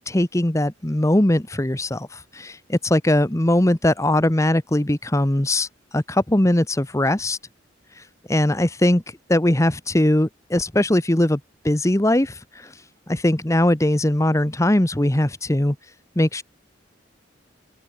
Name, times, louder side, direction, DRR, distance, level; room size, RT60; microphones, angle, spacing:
voice 1, 0.0-5.7 5.9-7.4 8.3-9.0 9.3-11.4 11.6-12.7 13.1-15.8 16.2-16.4, left 1 dB, 15° left, 1.0 m, -20 dB
head